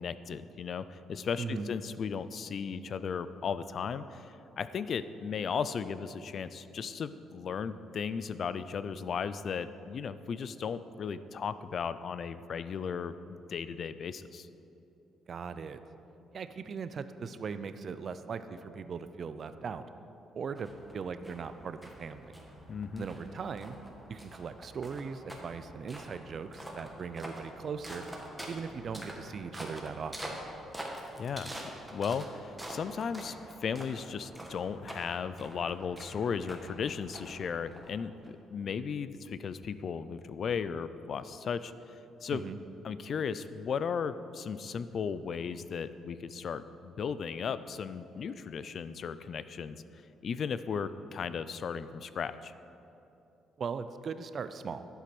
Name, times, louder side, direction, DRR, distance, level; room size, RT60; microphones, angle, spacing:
voice 1, 0.0-14.5 22.7-23.1 31.2-31.6 31.9-41.9 42.2-42.4 42.8-49.8 50.2-52.5, left 6 dB, 45° left, 14 dB, 0.4 m, -36 dB
voice 2, 1.4-1.7 15.3-15.8 16.3-19.9 20.3-22.4 23.0-23.8 24.1-28.0 28.5-30.4 42.3-42.6 53.6-54.9, right 5 dB, 45° right, 11 dB, 0.5 m, -39 dB
sound 1, 20.6-38.3, right 1 dB, 5° right, 1.5 m, -46 dB
11.5 x 8.1 x 6.1 m, 2.9 s
cardioid pair, 130°, 0 cm